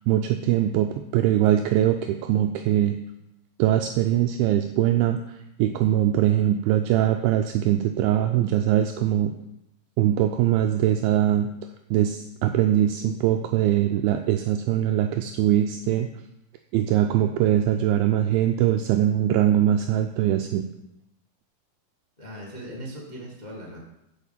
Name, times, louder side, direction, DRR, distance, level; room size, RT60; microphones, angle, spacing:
voice 1, 0.0-3.0 3.6-9.3 10.0-11.5 11.9-16.1 16.7-20.7, right 11 dB, 80° right, 5 dB, 2.3 m, -22 dB
voice 2, 22.2-23.8, equal, 85° left, -2 dB, 0.4 m, -39 dB
10.5 x 5.0 x 7.3 m, 0.85 s
omnidirectional pair, 4.5 m